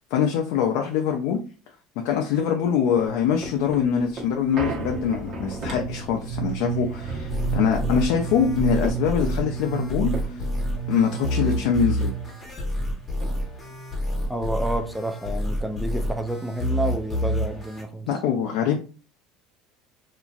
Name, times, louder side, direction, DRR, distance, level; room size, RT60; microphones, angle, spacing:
voice 1, 0.1-1.4 2.0-10.4 10.9-12.1 18.1-18.8, left 7 dB, 75° left, 0.4 m, -23 dB
sound 1, 2.9-11.6 12.0-12.1 12.4-13.7 14.2-14.3, right 2 dB, 50° right, 1.0 m, -37 dB
sound 2, 4.9-12.6, right 10 dB, 45° left, 0.9 m, -33 dB
sound 3, 7.3-17.8, equal, 20° left, 1.0 m, -28 dB
voice 2, 14.3-18.1, right 1 dB, ahead, 0.3 m, -29 dB
2.8 x 2.5 x 2.3 m
supercardioid pair, 110°, 0 cm